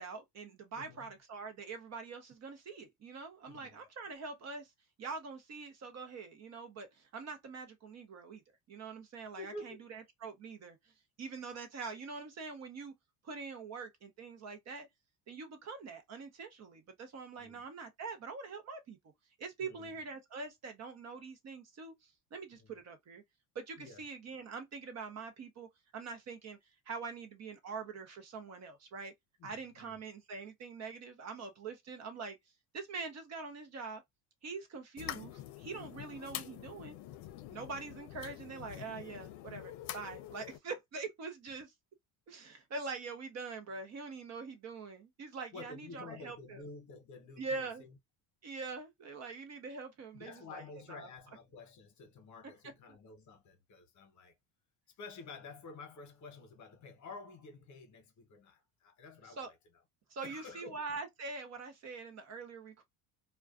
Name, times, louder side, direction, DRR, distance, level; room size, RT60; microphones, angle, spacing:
voice 1, 0.0-4.7 5.0-8.4 8.7-10.8 11.2-12.9 13.2-14.9 15.3-19.0 19.4-23.2 23.5-26.6 26.9-29.1 29.4-32.4 32.7-34.0 34.4-37.0 37.5-41.7 42.3-46.6 47.4-47.8 48.4-51.1 59.2-59.5 60.1-62.8, right 4 dB, 40° right, 0.6 m, -44 dB
voice 2, 3.5-3.8 9.4-9.8 17.4-17.6 19.6-20.0 22.5-22.7 23.8-24.0 29.4-30.0 39.8-39.9 45.5-48.0 50.1-54.3 55.0-59.6 60.2-60.8, left 3 dB, 40° left, 0.9 m, -50 dB
sound 1, 35.0-40.6, left 13 dB, 75° left, 0.6 m, -46 dB
2.4 x 2.2 x 2.3 m
cardioid pair, 130°, 42 cm